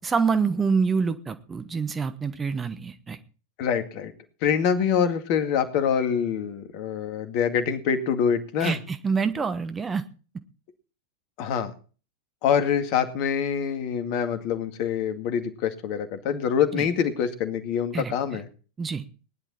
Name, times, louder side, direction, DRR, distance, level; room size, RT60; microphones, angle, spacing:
voice 1, 0.0-3.2 8.6-10.0 16.7-16.9 17.9-18.1 18.8-19.1, right 5 dB, 15° right, 10 dB, 1.2 m, -26 dB
voice 2, 3.6-4.1 4.4-8.8 11.4-11.7 12.4-18.5, left 7 dB, 45° left, 8 dB, 2.1 m, -25 dB
19.0 x 11.0 x 4.3 m, 0.38 s
figure-of-eight pair, 90°, 0 cm